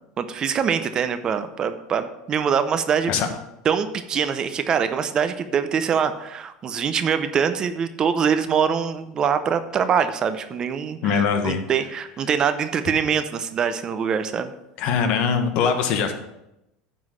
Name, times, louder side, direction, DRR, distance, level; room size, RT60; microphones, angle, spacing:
voice 1, 0.2-3.1 3.6-14.5, right 7 dB, 35° right, 10 dB, 0.6 m, -24 dB
voice 2, 11.0-11.6 14.8-16.1, left 6 dB, 55° left, 7 dB, 1.2 m, -22 dB
9.7 x 3.9 x 6.4 m, 0.87 s
supercardioid pair, 120°, 2 cm